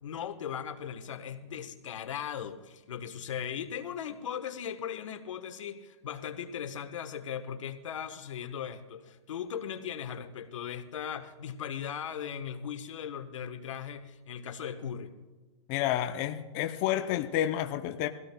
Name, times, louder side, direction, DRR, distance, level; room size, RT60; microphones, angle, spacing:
voice 1, 0.0-15.1, left 8 dB, 80° left, 8 dB, 1.1 m, -38 dB
voice 2, 15.7-18.1, left 12 dB, 30° left, 6 dB, 0.5 m, -30 dB
23.0 x 16.5 x 2.2 m, 1.3 s
hypercardioid pair, 155°, 16 cm